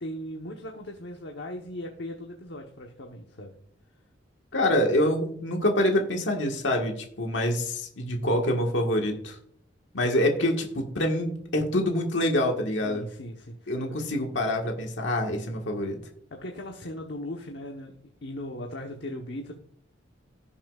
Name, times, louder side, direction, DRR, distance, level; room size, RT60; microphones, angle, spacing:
voice 1, 0.0-3.5 12.8-14.0 16.3-19.5, left 1 dB, 65° left, 2 dB, 1.1 m, -38 dB
voice 2, 4.5-9.4 9.9-13.0 13.7-16.0, left 1 dB, 85° left, 2 dB, 1.6 m, -26 dB
17.0 x 7.2 x 2.4 m, 0.63 s
head